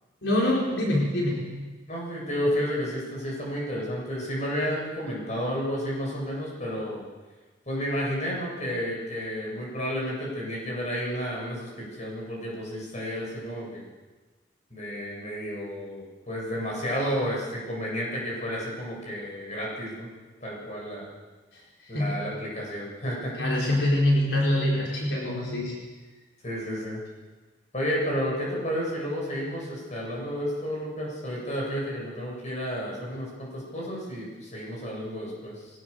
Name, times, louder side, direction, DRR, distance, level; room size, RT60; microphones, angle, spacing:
voice 1, 0.2-1.5 21.5-22.2 23.4-25.8, left 1 dB, 75° left, -3 dB, 4.7 m, -25 dB
voice 2, 1.9-7.0 7.7-13.9 14.7-20.1 20.4-21.1 21.9-23.3 26.4-27.0 27.7-35.7, equal, 40° left, -3 dB, 7.6 m, -31 dB
22.5 x 18.5 x 6.9 m, 1.3 s
head